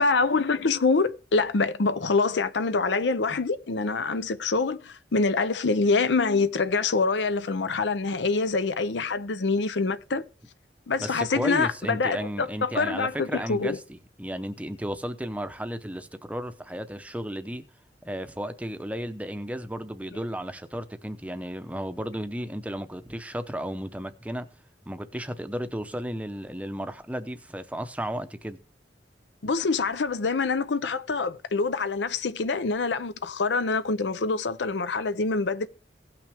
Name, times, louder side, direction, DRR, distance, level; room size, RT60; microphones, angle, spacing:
voice 1, 0.0-10.2 10.9-13.8 29.4-35.7, left 4 dB, 80° left, 0.7 m, -25 dB
voice 2, 11.0-17.6 18.0-24.5 24.9-28.6, equal, 10° right, 0.7 m, -34 dB
16.5 x 6.0 x 3.5 m
head